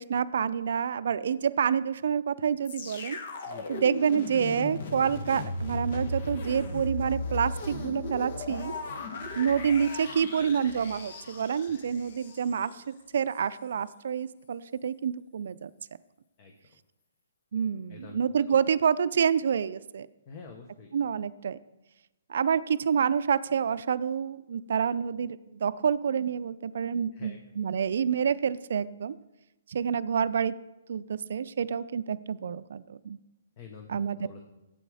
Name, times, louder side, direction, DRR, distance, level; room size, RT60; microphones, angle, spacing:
voice 1, 0.0-3.2 3.7-8.7 9.4-15.7 17.5-20.1 20.9-21.6 22.3-29.2 29.7-30.6 30.9-33.2 33.9-34.3, right 7 dB, 65° right, 16 dB, 0.4 m, -28 dB
sound 1, 2.6-12.7 13.3-13.4, left 2 dB, 50° left, 1.2 m, -36 dB
voice 2, 20.3-20.9 27.1-27.4 33.6-34.4, left 5 dB, 30° left, 3 dB, 1.1 m, -47 dB
12.0 x 8.4 x 4.9 m, 0.98 s
hypercardioid pair, 160°, 0 cm